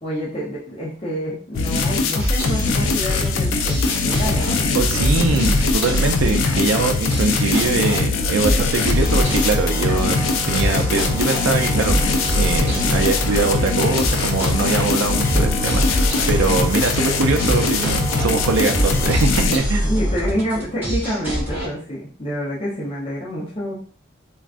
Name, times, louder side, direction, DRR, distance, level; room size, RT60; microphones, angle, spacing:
voice 1, 0.0-5.4 19.8-23.7, equal, 30° left, -7 dB, 0.7 m, -28 dB
sound 1, 1.5-19.6, left 4 dB, 80° left, 0.4 m, -22 dB
sound 2, 2.2-21.7, equal, 10° right, 1.2 m, -25 dB
voice 2, 4.7-16.0 16.3-19.9, right 4 dB, 75° right, 5 dB, 0.4 m, -22 dB
Organ, 8.9-19.8, right 2 dB, 10° left, 1.3 m, -34 dB
3.5 x 2.3 x 2.4 m, 0.43 s
head